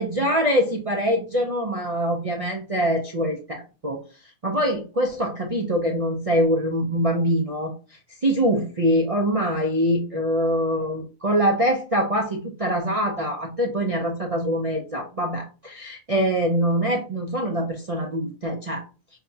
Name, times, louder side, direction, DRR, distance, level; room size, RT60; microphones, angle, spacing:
voice 1, 0.0-4.0 4.4-7.7 8.2-18.8, equal, 40° right, -1 dB, 0.5 m, -24 dB
5.7 x 2.3 x 2.7 m, 0.33 s
omnidirectional pair, 1.4 m